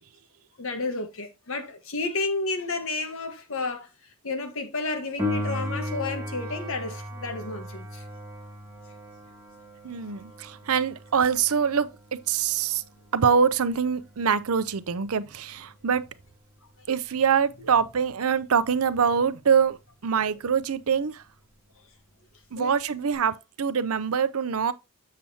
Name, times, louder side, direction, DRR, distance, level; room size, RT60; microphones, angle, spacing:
voice 1, 0.6-3.9 4.2-8.0 17.6-17.8 22.6-22.7, left 3 dB, 65° left, 1.4 m, -31 dB
Piano, 5.2-15.6 23.1-23.2, equal, 10° right, 2.2 m, -37 dB
voice 2, 9.8-12.8 13.1-16.0 16.9-19.8 20.0-21.2 22.5-24.7, right 6 dB, 75° right, 0.6 m, -24 dB
7.6 x 7.1 x 2.8 m
head